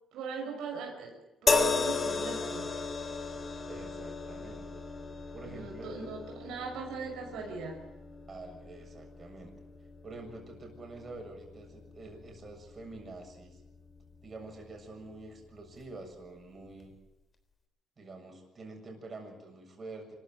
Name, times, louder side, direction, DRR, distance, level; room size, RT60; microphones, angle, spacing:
voice 1, 0.1-1.1 1.4-2.7 5.5-7.8, right 4 dB, 90° right, 0 dB, 6.1 m, -40 dB
sound 1, 1.5-14.8 15.7-15.9, left 4 dB, 35° left, 3.7 m, -36 dB
voice 2, 3.6-4.7 5.3-6.2 8.3-9.5 10.0-13.6 14.2-16.9 18.0-20.2, right 2 dB, 40° right, 2 dB, 7.1 m, -47 dB
25.5 x 14.5 x 9.3 m, 0.96 s
cardioid pair, 90°, 0 cm